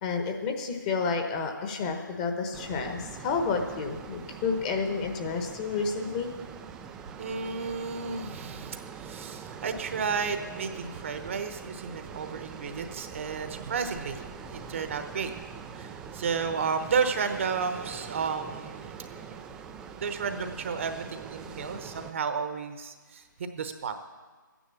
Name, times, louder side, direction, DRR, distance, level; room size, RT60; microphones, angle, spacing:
voice 1, 0.0-6.3, left 4 dB, 20° left, 4 dB, 1.1 m, -30 dB
sound 1, 2.5-22.1, right 6 dB, 5° right, 0.3 m, -43 dB
voice 2, 7.2-15.3 15.7-19.5 20.0-23.2 23.5-23.9, right 5 dB, 40° right, 8 dB, 1.0 m, -32 dB
14.0 x 10.0 x 7.0 m, 1.4 s
figure-of-eight pair, 150°, 11 cm